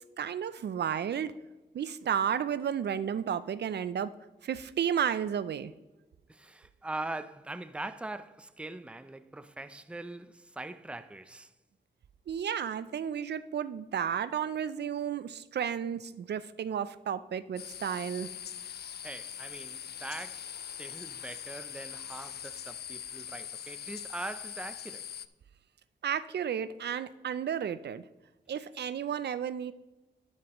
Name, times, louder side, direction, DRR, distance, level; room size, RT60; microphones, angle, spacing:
voice 1, 0.2-1.3 1.7-4.1 4.4-5.7 12.3-18.3 26.0-28.0 28.5-29.7, right 8 dB, 65° right, 0.4 m, -32 dB
voice 2, 6.3-11.5 18.6-18.8 19.0-25.1, right 2 dB, 5° right, 0.5 m, -42 dB
sound 1, 17.6-25.3, left 9 dB, 60° left, 0.4 m, -42 dB
10.5 x 9.6 x 3.0 m
cardioid pair, 55°, 19 cm